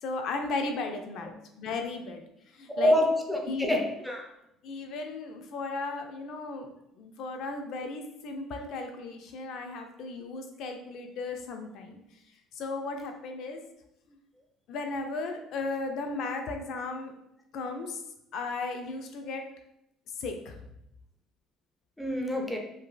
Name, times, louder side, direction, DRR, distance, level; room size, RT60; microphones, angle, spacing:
voice 1, 0.0-1.3 1.6-2.9 3.5-3.8 4.6-12.0 12.5-13.6 14.1-14.2 14.7-17.1 17.5-18.0 18.3-19.4 20.2-20.6, left 3 dB, 65° left, 4 dB, 0.4 m, -35 dB
voice 2, 2.7-4.3 22.0-22.6, left 1 dB, ahead, 1 dB, 0.5 m, -26 dB
2.8 x 2.6 x 2.2 m, 0.78 s
cardioid pair, 100°, 0 cm